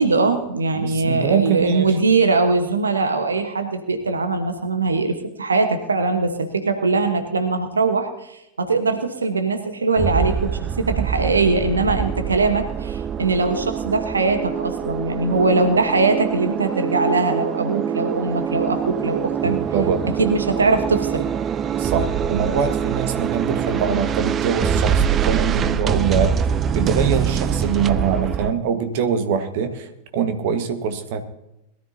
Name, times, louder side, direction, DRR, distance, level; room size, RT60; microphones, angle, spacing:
voice 1, 0.0-19.5 20.2-21.3, right 3 dB, 75° right, 7 dB, 1.2 m, -21 dB
voice 2, 0.7-1.9 19.4-20.1 21.8-26.4 26.7-31.2, right 6 dB, 50° right, 7 dB, 1.5 m, -23 dB
sound 1, 10.0-28.5, right 8 dB, 25° right, 0.5 m, -24 dB
21.5 x 13.0 x 2.8 m, 0.85 s
figure-of-eight pair, 90°, 0 cm